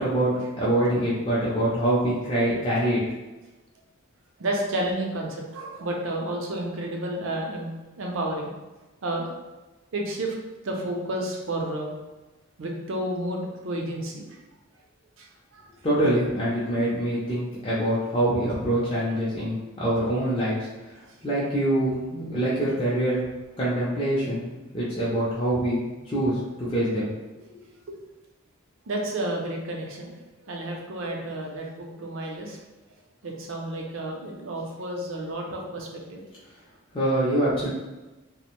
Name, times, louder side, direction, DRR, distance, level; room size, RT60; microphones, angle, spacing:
voice 1, 0.0-3.0 15.8-20.6 21.2-23.2 23.6-27.1 27.5-27.6 36.9-37.7, right 1 dB, 25° left, -9 dB, 0.5 m, -25 dB
voice 2, 4.4-7.7 8.0-8.5 9.0-9.3 9.9-10.3 10.6-11.9 12.6-14.3 15.2-15.3 15.5-15.7 27.9-28.0 28.9-30.1 30.5-32.6 33.2-36.2, right 1 dB, 65° right, 0 dB, 0.5 m, -31 dB
2.4 x 2.1 x 2.9 m, 1.1 s
head